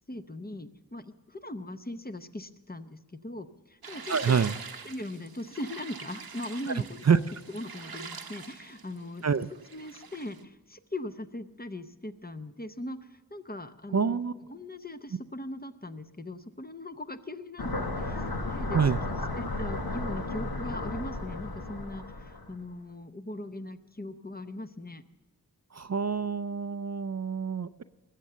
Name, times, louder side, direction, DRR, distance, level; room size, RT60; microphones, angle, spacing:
voice 1, 0.1-4.4 4.8-7.1 7.5-9.3 9.7-18.9 19.4-25.0, left 1 dB, 25° left, 9 dB, 0.8 m, -40 dB
sound 1, 3.8-10.4, right 5 dB, 75° right, 0.9 m, -44 dB
voice 2, 4.1-4.5 7.1-7.2 9.2-9.5 13.9-14.3 18.7-19.0 25.7-27.8, right 6 dB, 45° right, 12 dB, 0.5 m, -26 dB
sound 2, 17.6-22.5, left 2 dB, 70° left, 1.4 m, -34 dB
20.0 x 7.5 x 6.7 m, 1.2 s
wide cardioid pair, 60°, 37 cm